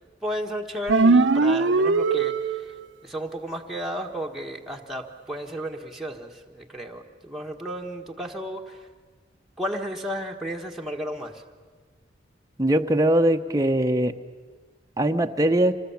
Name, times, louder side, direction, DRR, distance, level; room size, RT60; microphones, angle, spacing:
voice 1, 0.2-2.7 3.0-8.9 9.6-11.4, equal, ahead, -1 dB, 1.4 m, -33 dB
sound 1, 0.9-2.9, right 3 dB, 75° right, 0.8 m, -20 dB
voice 2, 12.6-14.1 15.0-15.7, right 1 dB, 20° right, 5 dB, 0.9 m, -21 dB
26.5 x 19.5 x 8.6 m, 1.5 s
head